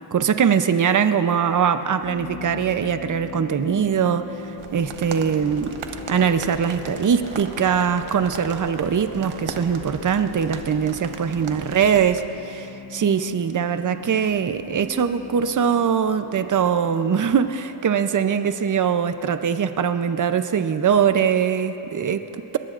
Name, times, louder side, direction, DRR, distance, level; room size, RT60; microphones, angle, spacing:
voice 1, 0.1-4.3 4.7-5.7 6.1-22.6, right 7 dB, 40° right, 10 dB, 0.6 m, -22 dB
sound 1, 2.0-20.7, left 3 dB, 35° left, 2.0 m, -39 dB
sound 2, 4.6-12.2, right 6 dB, 85° right, 1.0 m, -38 dB
23.0 x 20.5 x 2.5 m, 2.9 s
wide cardioid pair, 110°, 48 cm